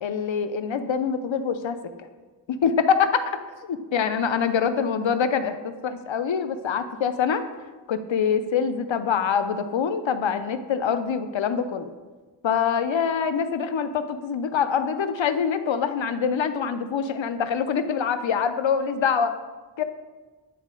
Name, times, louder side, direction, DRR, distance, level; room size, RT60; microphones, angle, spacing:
voice 1, 0.0-2.1 2.5-7.4 7.9-11.9 12.4-19.3 19.8-19.9, left 6 dB, 80° left, 10 dB, 0.5 m, -25 dB
9.3 x 4.0 x 3.7 m, 1.3 s
wide cardioid pair, 50°, 45 cm